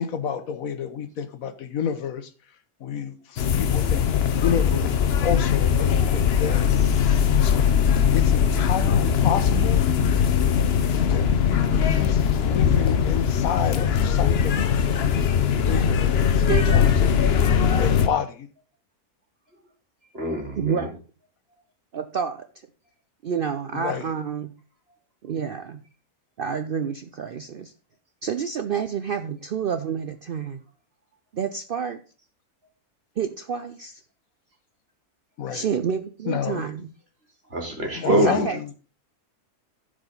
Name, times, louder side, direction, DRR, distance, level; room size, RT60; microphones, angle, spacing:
voice 1, 0.0-2.3 2.8-6.8 7.4-7.7 8.1-9.8 10.9-14.7 15.6-18.5 23.7-24.1 35.4-35.7 36.3-36.7 37.9-38.7, left 7 dB, 70° left, 1.3 m, -30 dB
sound 1, 3.4-18.1, left 7 dB, 50° left, 0.8 m, -20 dB
voice 2, 16.5-16.9 20.6-20.9 21.9-22.4 23.2-24.5 25.2-25.8 26.4-27.7 28.2-30.6 31.3-32.0 33.2-34.0 35.5-36.8 38.1-38.7, right 7 dB, 80° right, 0.4 m, -28 dB
voice 3, 20.1-20.9 37.5-38.3, right 1 dB, 40° right, 2.8 m, -25 dB
15.0 x 5.0 x 3.9 m
omnidirectional pair, 1.6 m